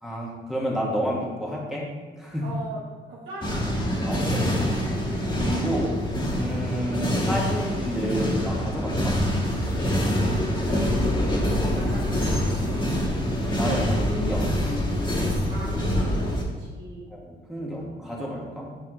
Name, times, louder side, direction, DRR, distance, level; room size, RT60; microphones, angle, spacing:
voice 1, 0.0-1.9 2.2-2.5 4.1-4.7 5.4-6.0 6.3-9.1 13.5-14.5 17.1-18.7, equal, ahead, -4 dB, 1.6 m, -30 dB
voice 2, 2.4-3.7 10.2-12.9 15.5-17.1, right 2 dB, 80° right, -6 dB, 1.3 m, -40 dB
sound 1, 3.4-16.4, equal, 25° left, 1.9 m, -25 dB
8.7 x 4.2 x 3.1 m, 1.3 s
cardioid pair, 90°, 20 cm